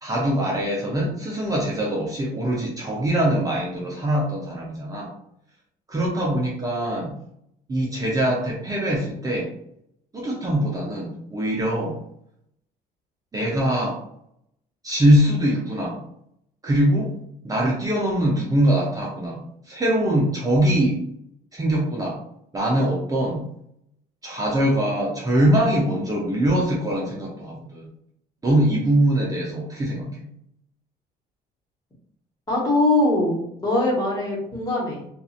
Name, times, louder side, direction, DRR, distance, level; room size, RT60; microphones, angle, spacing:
voice 1, 0.0-5.1 5.9-7.1 7.7-9.5 10.1-12.0 13.3-14.0 14.8-16.0 16.6-17.1 17.4-21.0 21.5-22.2 22.5-23.4 24.2-27.9 28.4-30.3, right 1 dB, 20° right, -4 dB, 0.7 m, -22 dB
voice 2, 32.5-35.1, left 2 dB, 20° left, -4 dB, 1.3 m, -22 dB
2.7 x 2.5 x 2.5 m, 0.71 s
cardioid pair, 110°, 17 cm